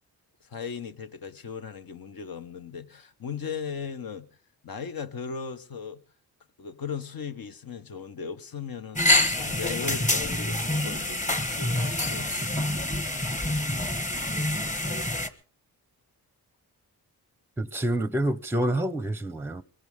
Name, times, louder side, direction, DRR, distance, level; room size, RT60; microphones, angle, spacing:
voice 1, 0.4-4.3 4.6-6.0 6.6-12.5, left 6 dB, 60° left, 1.2 m, -37 dB
sound 1, 9.0-15.3, left 1 dB, 20° left, 1.4 m, -26 dB
voice 2, 17.6-19.6, right 1 dB, 5° right, 0.7 m, -27 dB
22.0 x 17.0 x 3.6 m
cardioid pair, 65°, 40 cm